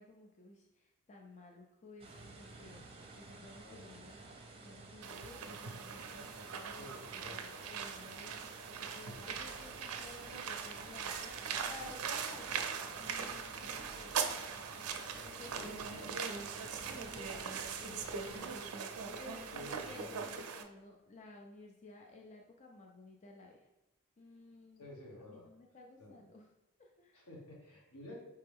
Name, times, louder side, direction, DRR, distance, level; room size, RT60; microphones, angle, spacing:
voice 1, 0.0-12.7 13.0-14.2 15.2-23.7 24.2-24.8 25.2-26.5 26.8-27.3, left 2 dB, 35° left, 1 dB, 0.4 m, -55 dB
sound 1, 2.0-18.5, right 3 dB, 25° right, 0.7 m, -54 dB
sound 2, 5.0-20.6, right 6 dB, 80° right, 0.5 m, -41 dB
voice 2, 6.8-7.5 15.2-16.1 16.7-16.8 19.5-20.1 24.8-25.4 26.0-26.1 27.1-28.2, left 1 dB, 80° left, -3 dB, 1.4 m, -51 dB
sound 3, 9.0-20.7, right 1 dB, ahead, 1.2 m, -59 dB
4.4 x 3.3 x 3.5 m, 0.93 s
head